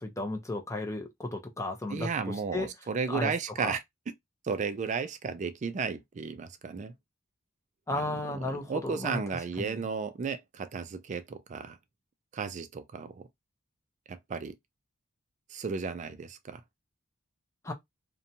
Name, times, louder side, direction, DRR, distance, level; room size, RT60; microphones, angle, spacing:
voice 1, 0.0-2.7 3.1-3.3 3.6-3.7 7.9-9.2 9.6-9.7 17.6-17.7, left 2 dB, 15° left, 0.6 m, -34 dB
voice 2, 1.9-3.8 4.4-6.9 7.9-11.8 12.3-13.3 14.1-14.6 15.5-16.6, right 5 dB, 35° right, 0.3 m, -34 dB
2.6 x 2.2 x 2.7 m
head